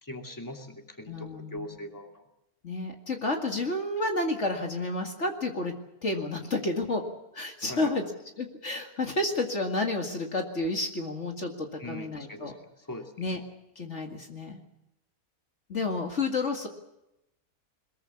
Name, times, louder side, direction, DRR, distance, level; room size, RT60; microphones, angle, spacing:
voice 1, 0.0-2.2 7.7-7.9 11.8-12.5 12.9-13.1, left 1 dB, 10° left, 3 dB, 2.7 m, -41 dB
voice 2, 1.1-1.8 2.6-5.7 6.0-7.1 7.3-8.1 8.4-12.5 13.2-13.4 13.8-14.6 15.7-16.7, left 2 dB, 50° left, 3 dB, 2.4 m, -30 dB
22.5 x 21.0 x 7.2 m, 0.88 s
omnidirectional pair, 1.6 m